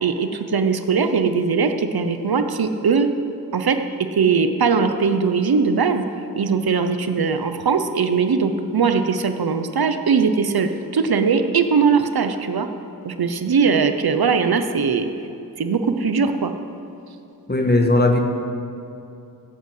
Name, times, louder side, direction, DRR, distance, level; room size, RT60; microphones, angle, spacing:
voice 1, 0.0-3.1 3.5-3.8 4.1-6.0 6.4-12.7 13.0-15.1 15.6-16.5, right 5 dB, 75° right, 8 dB, 0.9 m, -20 dB
voice 2, 17.5-18.2, left 2 dB, 25° left, 3 dB, 1.6 m, -17 dB
17.0 x 8.4 x 7.9 m, 2.7 s
wide cardioid pair, 85°, 37 cm